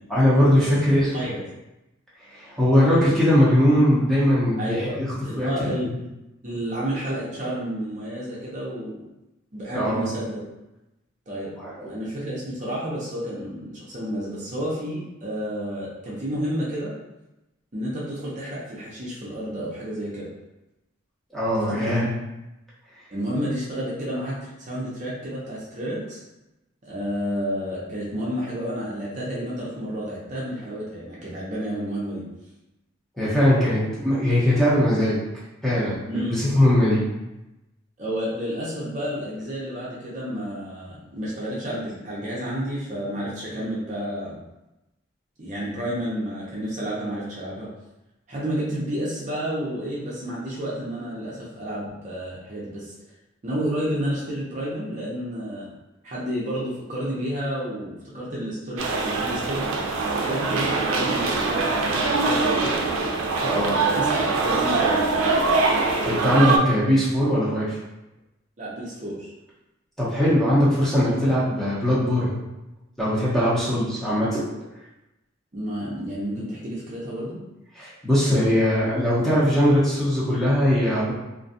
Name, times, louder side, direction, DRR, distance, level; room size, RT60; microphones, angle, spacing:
voice 1, 0.1-1.1 2.3-5.1 5.4-5.9 9.7-10.0 11.6-11.9 21.3-22.1 33.2-35.2 35.6-37.0 63.4-63.8 66.0-67.8 70.0-72.3 73.0-74.4 77.7-81.1, equal, ahead, -9 dB, 0.7 m, -20 dB
voice 2, 4.6-5.0 5.2-5.9 6.4-9.0 9.5-10.4 11.3-11.5 11.8-16.9 17.7-20.3 21.7-22.1 23.1-26.2 26.9-32.2 36.1-36.3 38.0-44.4 45.4-47.7 48.3-52.9 53.4-55.7 56.0-59.7 60.1-62.8 63.9-65.1 68.6-69.3 75.5-77.4, equal, 40° right, -6 dB, 0.5 m, -30 dB
sound 1, 58.8-66.6, right 3 dB, 90° right, 0.4 m, -23 dB
2.5 x 2.2 x 2.6 m, 0.96 s
head